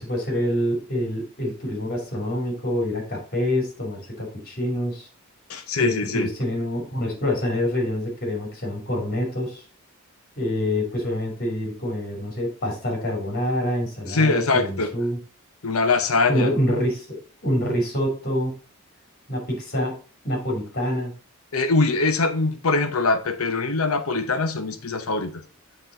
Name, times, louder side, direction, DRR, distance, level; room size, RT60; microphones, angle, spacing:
voice 1, 0.0-5.1 5.8-9.6 10.4-15.2 16.3-18.5 19.3-19.9 20.2-21.1, left 1 dB, 45° left, 2.9 m, -26 dB
voice 2, 5.5-6.3 14.1-14.9 15.6-16.5 21.5-25.4, left 3 dB, 80° left, 0.9 m, -22 dB
7.7 x 4.1 x 4.0 m
head